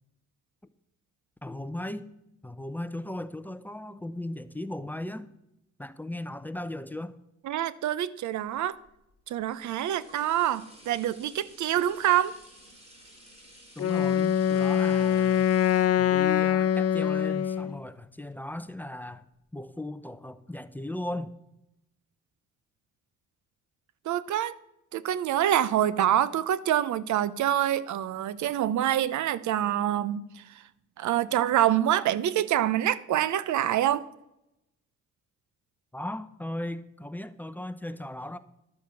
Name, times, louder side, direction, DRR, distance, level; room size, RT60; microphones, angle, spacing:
voice 1, 1.4-2.1 2.4-5.3 5.8-7.1 13.8-15.5 16.0-19.2 19.5-21.3 35.9-38.4, left 1 dB, 5° left, 0.7 m, -37 dB
voice 2, 7.4-8.8 9.3-12.4 24.1-24.6 24.9-30.6 31.0-34.0, right 11 dB, 70° right, 0.7 m, -26 dB
sound 1, 8.6-18.2 18.7-18.8, right 1 dB, 20° right, 5.5 m, -54 dB
Wind instrument woodwind instrument, 13.8-17.8, left 9 dB, 55° left, 0.6 m, -24 dB
12.0 x 7.5 x 7.0 m
cardioid pair, 90°, 30 cm